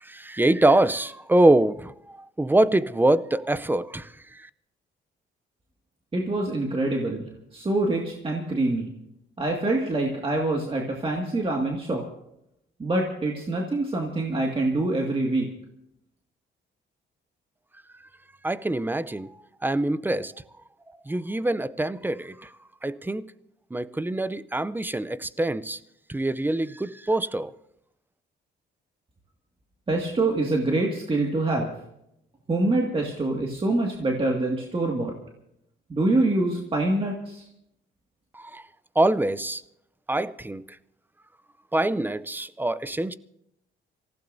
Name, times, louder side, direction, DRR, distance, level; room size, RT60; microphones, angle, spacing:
voice 1, 0.0-4.4 18.4-19.3 19.6-20.3 21.1-22.5 22.8-23.2 23.7-25.8 26.1-27.5 38.3-38.6 39.0-39.6 40.1-40.6 41.7-43.1, right 1 dB, 10° right, 0.5 m, -24 dB
voice 2, 6.1-7.3 7.5-8.9 9.4-12.0 12.8-15.5 29.9-31.7 32.5-35.1 35.9-37.5, right 2 dB, 25° right, 2.0 m, -25 dB
25.5 x 15.5 x 2.7 m
cardioid pair, 90°, 20 cm